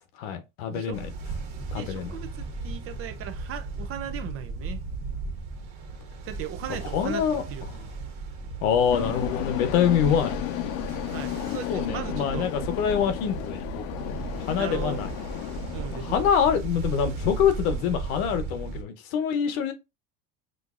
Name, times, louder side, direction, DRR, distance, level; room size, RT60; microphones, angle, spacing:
voice 1, 0.2-1.1 1.7-2.2 6.9-7.4 8.6-10.3 11.7-15.1 15.9-19.7, left 8 dB, 90° left, 1.0 m, -25 dB
voice 2, 0.7-1.0 1.7-4.8 6.3-7.2 7.5-7.9 11.1-12.5 14.5-15.0 15.7-16.2, right 9 dB, 35° right, 0.4 m, -37 dB
Ocean, 0.9-18.8, right 3 dB, 60° right, 1.4 m, -36 dB
sound 1, 8.9-16.3, left 13 dB, 70° left, 0.6 m, -33 dB
6.2 x 2.6 x 2.4 m
cardioid pair, 140°, 41 cm